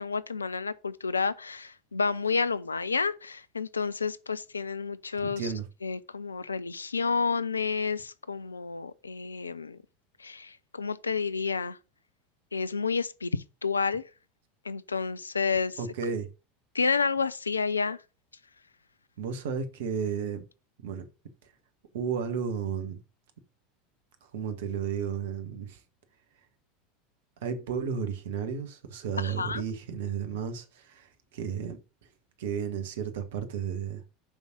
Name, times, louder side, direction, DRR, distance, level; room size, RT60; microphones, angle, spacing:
voice 1, 0.0-5.5 5.8-9.8 10.2-11.8 12.5-14.0 14.6-15.8 16.7-18.0 29.2-29.6, left 5 dB, 80° left, 0.5 m, -30 dB
voice 2, 5.2-5.7 15.8-16.3 19.2-20.4 20.8-21.1 21.9-23.0 24.3-25.8 27.4-31.8 32.4-34.0, right 7 dB, 65° right, 1.6 m, -33 dB
7.1 x 5.5 x 6.1 m
figure-of-eight pair, 75°, 0 cm